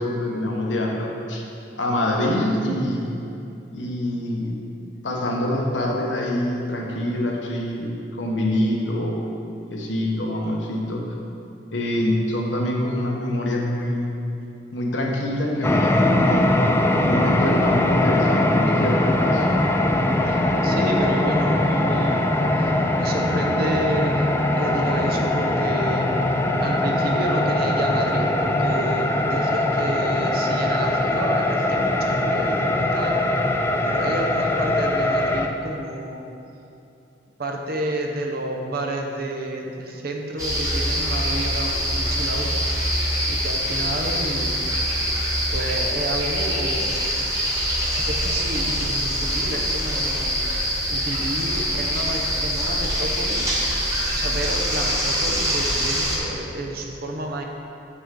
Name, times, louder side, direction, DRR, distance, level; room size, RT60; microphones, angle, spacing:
voice 1, 0.0-1.4 1.8-3.1 3.7-4.6 5.0-9.1 9.7-11.0 11.7-14.1 14.7-16.5 16.9-19.4, left 1 dB, 80° left, -1 dB, 1.0 m, -25 dB
sound 1, 15.6-35.5, left 1 dB, 15° left, 0.3 m, -21 dB
voice 2, 20.2-22.3 22.6-24.3 24.6-26.1 26.6-33.2 33.8-36.2 37.4-42.5 43.3-44.6 44.9-46.9 47.5-50.4 50.9-53.4 54.1-57.4, right 1 dB, 55° right, 1 dB, 0.8 m, -30 dB
sound 2, 40.4-56.2, equal, 20° right, 1.4 m, -24 dB
6.9 x 6.2 x 3.7 m, 2.7 s
head